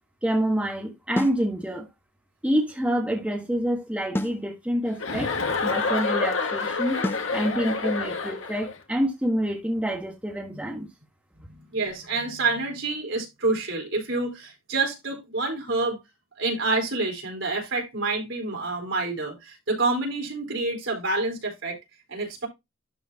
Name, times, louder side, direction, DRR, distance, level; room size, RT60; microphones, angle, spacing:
voice 1, 0.2-1.9 2.4-5.3 5.6-7.0 7.3-10.9, equal, 5° right, 1.4 m, -27 dB
sound 1, 1.2-1.5 4.1-4.5 7.0-7.3, left 1 dB, 10° left, 0.5 m, -29 dB
Chuckle chortle, 5.0-8.7, left 4 dB, 70° left, 1.8 m, -27 dB
voice 2, 11.5-16.0 16.4-21.8 22.1-22.5, right 3 dB, 65° right, 4.4 m, -28 dB
12.5 x 4.7 x 2.9 m
head